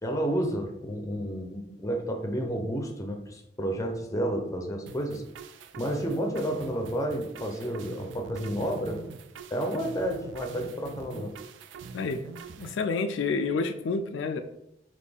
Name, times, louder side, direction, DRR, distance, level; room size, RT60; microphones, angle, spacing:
voice 1, 0.0-5.2 5.8-9.0 9.5-11.3, right 1 dB, 20° left, 3 dB, 0.6 m, -31 dB
sound 1, 4.9-12.8, right 5 dB, 80° right, 0.3 m, -45 dB
voice 2, 12.6-14.4, left 4 dB, 80° left, 8 dB, 0.3 m, -29 dB
4.1 x 3.1 x 3.4 m, 0.81 s
head